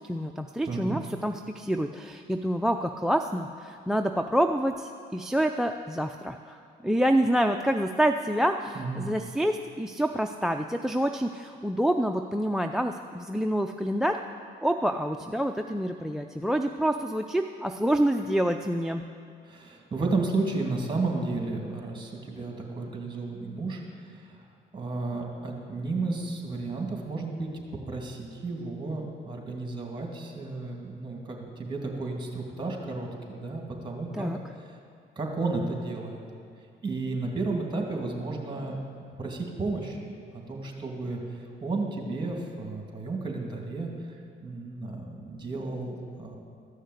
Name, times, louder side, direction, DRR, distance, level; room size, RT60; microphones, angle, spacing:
voice 1, 0.1-14.2 14.6-19.0 34.1-34.4, right 1 dB, ahead, 7 dB, 0.4 m, -27 dB
voice 2, 0.6-1.0 8.7-9.1 19.4-24.4 24.7-34.3 34.6-34.8 35.2-36.2 36.8-38.8 39.2-40.1 40.5-41.2 41.6-43.9 44.4-46.4, right 3 dB, 25° right, 1 dB, 2.4 m, -32 dB
13.5 x 6.5 x 8.1 m, 2.4 s
cardioid pair, 90°, 20 cm